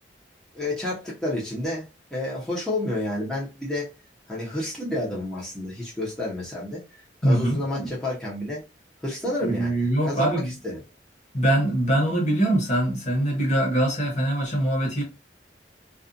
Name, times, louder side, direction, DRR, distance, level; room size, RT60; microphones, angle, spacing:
voice 1, 0.5-3.9 4.3-6.8 7.2-8.6 9.0-10.8, left 1 dB, 5° left, 0.8 m, -30 dB
voice 2, 7.2-7.9 9.4-10.5 11.3-15.0, right 1 dB, 40° left, 1.1 m, -23 dB
2.5 x 2.4 x 2.5 m
head